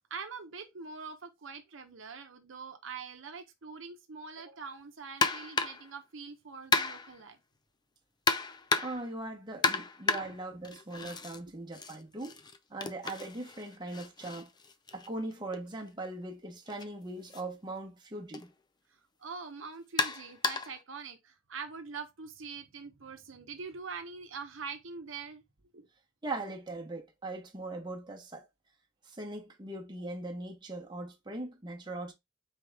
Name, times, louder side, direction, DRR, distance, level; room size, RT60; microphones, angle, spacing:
voice 1, 0.1-7.4 10.2-10.4 10.7-10.8 19.2-25.4 25.7-25.9, right 5 dB, 70° right, 0.8 m, -44 dB
sound 1, 5.2-5.9 6.7-7.2 8.3-9.1 9.6-11.4 11.7-15.6 16.7-16.8 17.3-17.4 18.3-18.5 20.0-20.8, left 4 dB, 20° left, 0.4 m, -32 dB
voice 2, 8.8-12.4 12.7-14.5 14.9-18.5 26.2-28.5 29.0-32.1, right 2 dB, 20° right, 1.0 m, -40 dB
4.4 x 3.4 x 3.4 m
head